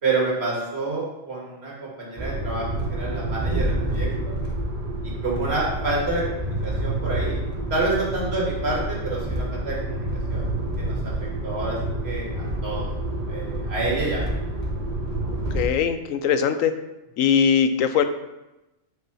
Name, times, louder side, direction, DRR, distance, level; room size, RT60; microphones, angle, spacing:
voice 1, 0.0-4.1 5.0-7.4 7.7-10.0 10.3-10.5 10.8-11.1 11.4-11.8 12.0-12.9 13.3-14.3, right 3 dB, 50° right, -4 dB, 2.4 m, -28 dB
sound 1, 2.2-15.6, right 1 dB, 30° right, 1.1 m, -28 dB
voice 2, 15.3-16.7 17.2-18.0, left 7 dB, 90° left, 9 dB, 1.1 m, -21 dB
5.7 x 5.5 x 5.6 m, 0.98 s
omnidirectional pair, 1.3 m